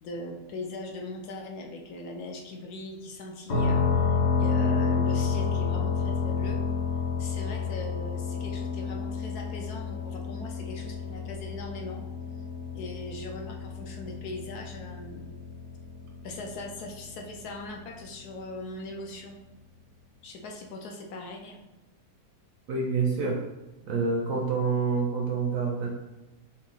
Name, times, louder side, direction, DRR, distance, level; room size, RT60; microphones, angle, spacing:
voice 1, 0.0-6.6 7.2-12.0 12.7-15.3 16.2-19.4 20.2-21.6, left 2 dB, 70° left, 2 dB, 1.1 m, -40 dB
sound 1, 3.5-17.2, left 5 dB, 50° left, 1.2 m, -30 dB
voice 2, 22.7-23.4 23.8-25.9, right 4 dB, 70° right, 0 dB, 0.8 m, -27 dB
5.9 x 2.1 x 3.8 m, 1.0 s
omnidirectional pair, 1.9 m